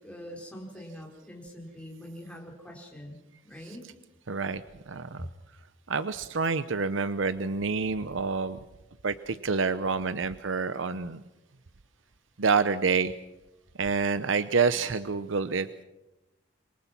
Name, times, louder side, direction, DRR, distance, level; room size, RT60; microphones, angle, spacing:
voice 1, 0.0-3.2 3.4-3.8, equal, 5° left, -1 dB, 4.6 m, -44 dB
voice 2, 3.6-3.9 4.3-4.6 4.9-5.3 5.9-8.6 9.0-11.2 12.4-13.1 13.8-15.8, right 4 dB, 85° right, 13 dB, 0.8 m, -28 dB
27.5 x 23.5 x 6.0 m, 0.98 s
head